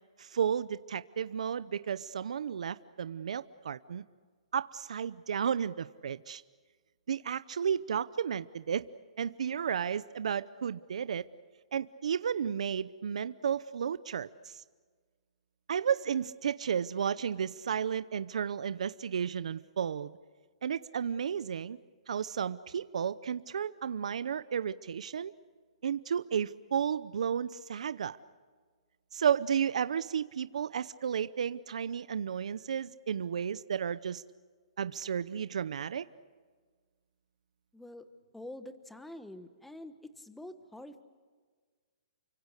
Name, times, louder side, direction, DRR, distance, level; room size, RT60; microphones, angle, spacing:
voice 1, 0.2-4.0 4.5-6.4 7.1-8.9 9.2-11.2 11.7-14.6 15.7-20.1 20.6-21.8 22.1-25.3 25.8-28.2 29.1-34.2 34.8-36.1, right 7 dB, 75° right, 14 dB, 0.7 m, -33 dB
voice 2, 37.7-38.1 38.3-41.0, left 1 dB, 5° left, 10 dB, 1.2 m, -46 dB
29.5 x 25.0 x 6.6 m, 1.5 s
hypercardioid pair, 160°, 4 cm